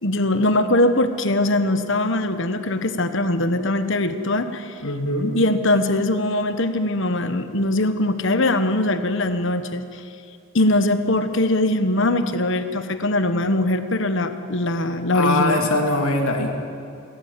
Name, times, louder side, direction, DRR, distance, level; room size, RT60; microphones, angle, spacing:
voice 1, 0.0-4.8 5.3-10.0 10.5-15.7, left 1 dB, 55° left, 9 dB, 1.2 m, -21 dB
voice 2, 4.8-5.3 15.1-16.6, left 1 dB, 75° left, 2 dB, 3.1 m, -22 dB
28.5 x 13.0 x 8.3 m, 2.6 s
head